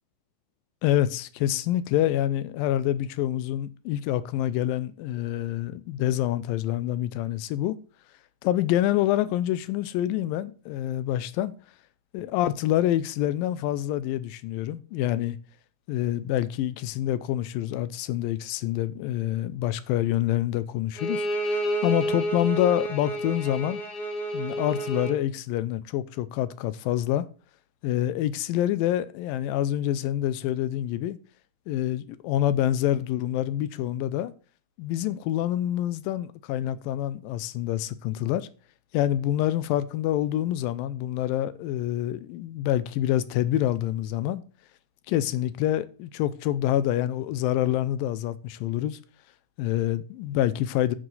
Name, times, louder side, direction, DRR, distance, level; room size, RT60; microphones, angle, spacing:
voice 1, 0.8-7.8 8.4-11.5 12.1-15.4 15.9-23.8 24.3-27.3 27.8-31.2 31.7-34.3 34.8-38.5 38.9-44.4 45.1-49.0 49.6-51.0, left 12 dB, 90° left, 2.4 m, -27 dB
Bowed string instrument, 21.0-25.2, right 1 dB, 55° left, 1.1 m, -29 dB
14.0 x 4.7 x 4.1 m
omnidirectional pair, 4.0 m